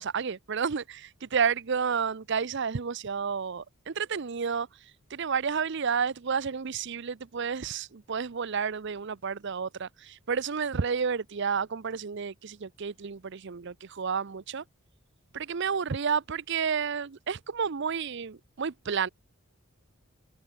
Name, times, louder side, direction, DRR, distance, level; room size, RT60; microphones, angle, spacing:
voice 1, 0.0-14.6 15.3-19.1, right 6 dB, 55° right, 0.6 m, -31 dB
head